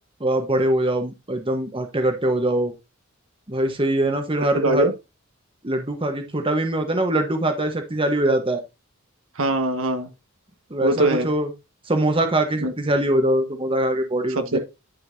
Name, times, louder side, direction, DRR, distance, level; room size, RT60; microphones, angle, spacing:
voice 1, 0.2-2.7 3.5-4.9 5.6-8.6 10.7-11.5 11.9-14.6, right 1 dB, 25° right, 1.2 m, -22 dB
voice 2, 9.3-10.1 10.8-11.3 12.6-12.7 14.5-14.6, right 2 dB, 70° right, 1.5 m, -21 dB
11.0 x 5.6 x 2.7 m
head